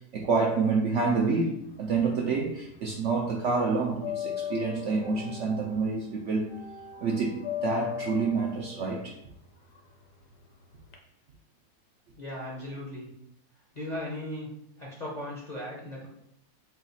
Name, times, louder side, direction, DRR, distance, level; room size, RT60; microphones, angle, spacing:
voice 1, 0.1-6.6 7.0-9.2, right 4 dB, 70° right, -1 dB, 0.7 m, -28 dB
sound 1, 1.7-2.8 3.0-11.0, left 8 dB, 65° left, 1.0 m, -38 dB
voice 2, 12.1-13.1 13.7-16.1, left 1 dB, 40° left, -5 dB, 0.6 m, -37 dB
3.8 x 2.3 x 4.0 m, 0.73 s
omnidirectional pair, 1.7 m